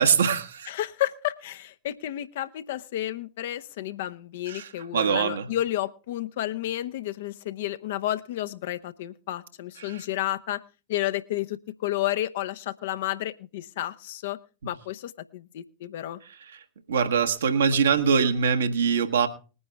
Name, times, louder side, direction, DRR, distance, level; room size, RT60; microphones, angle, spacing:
voice 1, 0.0-0.7 4.5-5.5 9.8-10.0 14.6-14.7 16.9-19.3, right 6 dB, 65° right, 7 dB, 1.4 m, -23 dB
voice 2, 0.7-10.6 10.9-14.4 14.6-16.2, left 14 dB, 55° left, 12 dB, 0.8 m, -31 dB
20.5 x 9.7 x 3.5 m, 0.34 s
figure-of-eight pair, 90°, 0 cm